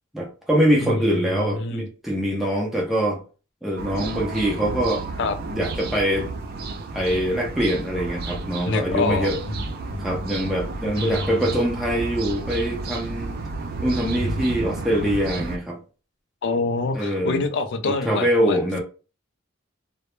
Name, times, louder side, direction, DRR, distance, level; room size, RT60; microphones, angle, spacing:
voice 1, 0.1-3.2 3.6-5.0 5.5-6.3 6.9-9.4 10.0-13.3 13.8-15.8 16.9-17.4 17.8-18.8, equal, ahead, 0.6 m, -23 dB
voice 2, 1.3-1.9 5.2-5.4 8.7-9.6 9.9-10.3 11.0-11.4 16.4-18.8, left 3 dB, 60° left, 0.4 m, -26 dB
sound 1, 3.8-15.6, right 3 dB, 50° right, 0.3 m, -32 dB
2.1 x 2.0 x 3.0 m
head